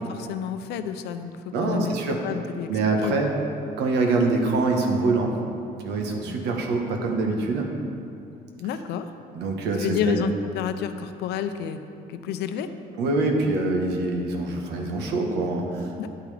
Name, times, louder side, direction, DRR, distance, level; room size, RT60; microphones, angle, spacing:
voice 1, 0.0-2.0 2.2-2.7 3.0-3.2 8.6-9.1 9.8-11.8 12.1-12.7 16.0-16.1, left 8 dB, 80° left, 9 dB, 0.6 m, -30 dB
voice 2, 1.5-2.2 2.7-3.3 3.8-5.4 5.8-7.7 9.3-10.2 13.0-15.9, right 3 dB, 85° right, 2 dB, 1.2 m, -24 dB
10.0 x 8.6 x 3.4 m, 2.6 s
cardioid pair, 110°, 17 cm